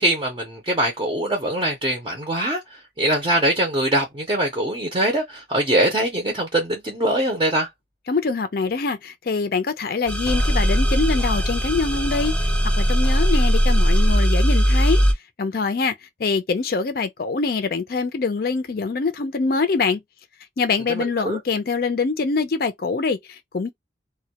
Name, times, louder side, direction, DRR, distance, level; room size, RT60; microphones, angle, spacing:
voice 1, 0.0-2.6 3.0-7.7 20.9-21.4, right 1 dB, 25° right, 0.5 m, -22 dB
voice 2, 8.1-12.3 12.8-15.0 15.4-20.0 20.6-23.7, left 4 dB, 55° left, 0.4 m, -24 dB
sound 1, 10.1-15.1, equal, 5° left, 0.8 m, -19 dB
2.2 x 2.1 x 2.8 m
head